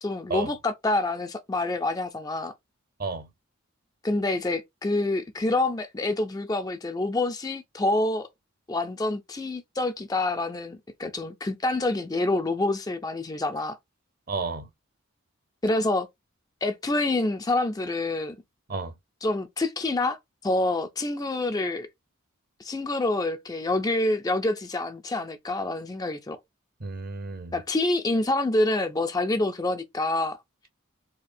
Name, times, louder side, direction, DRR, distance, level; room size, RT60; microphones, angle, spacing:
voice 1, 0.0-2.5 4.0-8.3 8.7-13.8 15.6-16.1 16.6-18.4 19.2-21.9 22.6-26.4 27.5-30.4, left 2 dB, 15° left, 0.3 m, -27 dB
voice 2, 14.3-14.7 18.7-18.9 26.8-27.5, right 3 dB, 40° right, 0.7 m, -32 dB
4.3 x 2.7 x 2.5 m
head